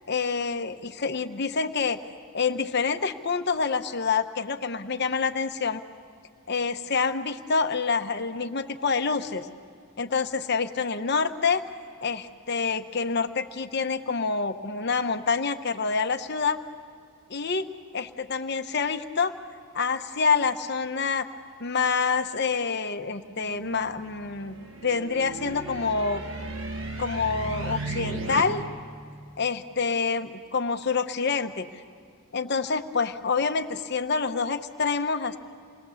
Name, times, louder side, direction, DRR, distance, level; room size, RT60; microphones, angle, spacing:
voice 1, 0.1-2.0 2.3-5.8 6.5-9.5 10.0-11.6 12.0-16.6 17.3-17.7 17.9-19.3 19.7-21.3 21.6-24.6 24.8-26.2 27.0-28.7 29.4-31.7 32.3-35.4, left 5 dB, 50° left, 8 dB, 1.0 m, -27 dB
sound 1, 23.4-28.4, right 2 dB, 60° right, 1.8 m, -36 dB
28.0 x 21.0 x 7.2 m, 2.3 s
head